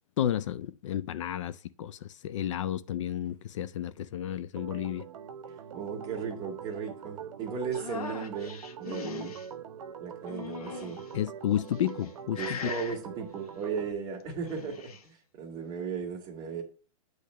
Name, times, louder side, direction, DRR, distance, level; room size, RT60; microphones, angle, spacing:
voice 1, 0.2-5.0 11.1-12.7, left 11 dB, 55° left, 0.4 m, -32 dB
Organ, 4.6-13.9, right 8 dB, 65° right, 0.9 m, -43 dB
voice 2, 5.7-9.5 10.0-11.0 12.4-16.6, right 6 dB, 20° right, 1.6 m, -36 dB
sound 1, 7.7-9.5 10.3-11.1 11.8-12.1 12.3-13.0 14.3-15.0, left 6 dB, 90° left, 1.1 m, -40 dB
8.5 x 3.2 x 6.2 m
hypercardioid pair, 160°, 18 cm